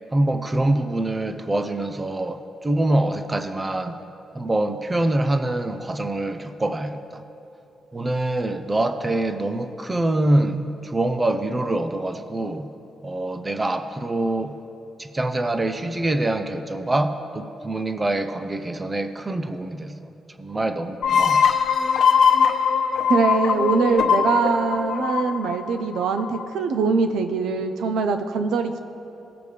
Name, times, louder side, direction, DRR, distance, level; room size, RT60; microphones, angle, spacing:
voice 1, 0.1-4.0 4.3-7.2 7.9-12.7 13.0-14.5 15.0-21.5, right 1 dB, 15° right, 9 dB, 0.5 m, -25 dB
sound 1, 21.0-26.5, left 7 dB, 60° left, 0.9 m, -21 dB
voice 2, 23.1-28.8, right 4 dB, 85° right, 8 dB, 0.6 m, -22 dB
18.0 x 6.8 x 3.3 m, 2.9 s
cardioid pair, 140°, 0 cm